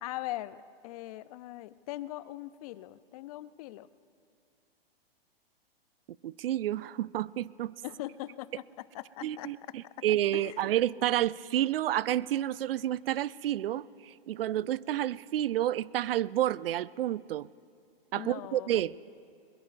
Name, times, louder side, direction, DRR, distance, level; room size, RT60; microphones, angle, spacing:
voice 1, 0.0-3.9 7.8-9.5 10.0-10.1 10.3-10.6 18.1-18.7, left 16 dB, 40° left, 17 dB, 0.4 m, -41 dB
voice 2, 6.2-7.7 9.2-17.5 18.1-19.0, right 12 dB, 70° right, 21 dB, 0.4 m, -30 dB
22.0 x 22.0 x 2.5 m, 2.5 s
hypercardioid pair, 120°, 30 cm